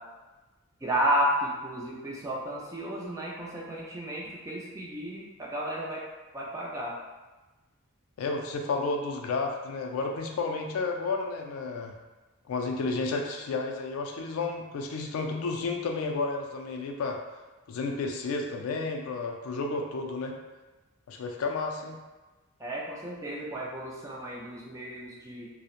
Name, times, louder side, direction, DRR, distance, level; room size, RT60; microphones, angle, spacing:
voice 1, 0.8-6.0 6.3-6.9 22.6-25.5, right 1 dB, 15° right, -5 dB, 0.4 m, -32 dB
voice 2, 8.2-11.9 12.5-17.2 17.7-20.3 21.1-22.0, left 3 dB, 75° left, 2 dB, 0.3 m, -31 dB
2.9 x 2.0 x 2.4 m, 1.2 s
head